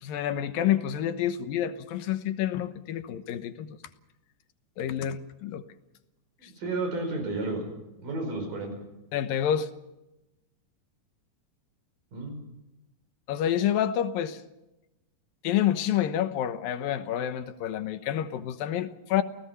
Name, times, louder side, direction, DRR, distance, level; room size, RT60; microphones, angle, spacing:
voice 1, 0.0-3.8 4.8-5.6 9.1-9.7 13.3-14.4 15.4-19.2, left 10 dB, 90° left, 10 dB, 2.9 m, -28 dB
voice 2, 6.4-7.7 8.0-8.7 12.1-12.4, right 2 dB, 70° right, 5 dB, 6.6 m, -32 dB
29.0 x 17.5 x 5.7 m, 0.97 s
omnidirectional pair, 3.9 m